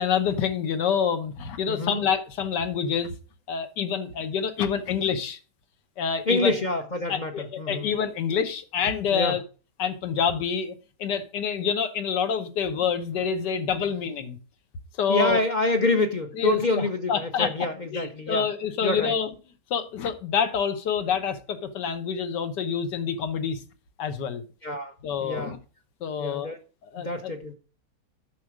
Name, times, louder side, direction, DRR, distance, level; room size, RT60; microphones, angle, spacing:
voice 1, 0.0-3.1 3.5-5.4 6.0-6.5 7.1-9.4 9.8-10.7 11.0-14.4 15.0-15.4 16.4-17.5 17.9-19.3 19.7-23.6 24.0-24.4 25.0-25.6 26.0-26.5 26.9-27.3, left 7 dB, 80° left, 1.5 m, -27 dB
voice 2, 1.7-2.0 6.3-7.9 9.1-9.4 15.1-18.5 18.8-19.1 24.6-24.9 25.2-25.5 26.2-26.6 27.0-27.5, left 2 dB, 40° left, 0.6 m, -27 dB
9.1 x 6.0 x 4.8 m
omnidirectional pair, 1.8 m